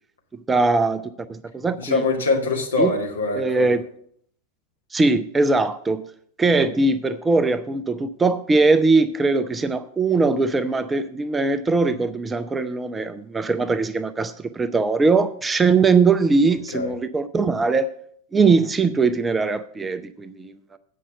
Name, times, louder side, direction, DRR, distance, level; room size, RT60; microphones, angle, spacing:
voice 1, 0.5-1.0 1.3-2.0 2.8-2.9 3.3-3.8 4.9-6.0 6.4-17.9 18.3-20.8, right 3 dB, 15° right, 11 dB, 0.5 m, -21 dB
voice 2, 1.8-3.7 16.7-16.9, left 3 dB, 70° left, 0 dB, 1.9 m, -23 dB
8.5 x 5.6 x 7.6 m, 0.65 s
figure-of-eight pair, 90°, 0 cm